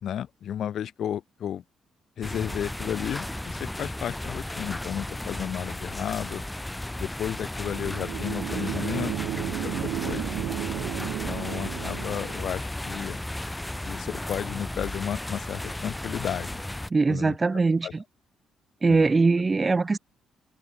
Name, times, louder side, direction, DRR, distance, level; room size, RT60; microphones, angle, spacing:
voice 1, 0.0-1.6 2.2-6.4 7.0-10.3 11.0-13.2 13.8-16.6 17.1-17.3 17.8-17.9 18.9-19.1, left 10 dB, 65° left, 1.3 m, -33 dB
sound 1, 2.2-16.9, left 1 dB, 10° left, 5.6 m, -34 dB
sound 2, 7.6-12.6, right 14 dB, 85° right, 1.2 m, -33 dB
voice 2, 16.9-18.0 18.8-20.0, right 3 dB, 25° right, 1.7 m, -22 dB
cardioid pair, 90°, 0 cm